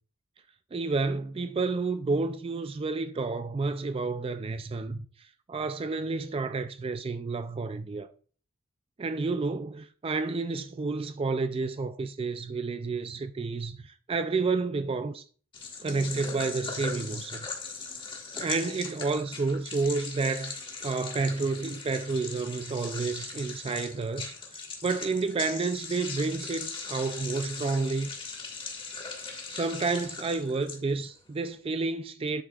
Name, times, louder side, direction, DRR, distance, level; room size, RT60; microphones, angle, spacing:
voice 1, 0.7-8.1 9.0-15.2 15.8-17.5 18.3-28.1 29.5-32.4, right 3 dB, 30° right, 0.3 m, -30 dB
sound 1, 15.5-31.2, left 4 dB, 25° left, 1.6 m, -39 dB
9.4 x 7.9 x 2.4 m
head